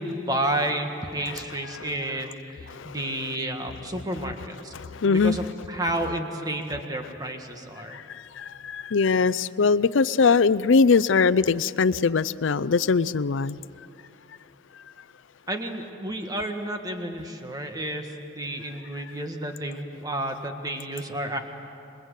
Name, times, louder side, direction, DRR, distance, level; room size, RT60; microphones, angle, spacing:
voice 1, 0.0-4.7 5.0-8.0 15.5-21.4, right 1 dB, 20° right, 5 dB, 1.6 m, -31 dB
voice 2, 1.3-2.2 2.7-3.3 4.2-4.3 4.7-5.5 5.8-6.1 6.7-6.8 7.9-8.0 8.4-13.6, left 5 dB, 75° left, 17 dB, 0.5 m, -23 dB
27.0 x 22.0 x 8.2 m, 2.7 s
head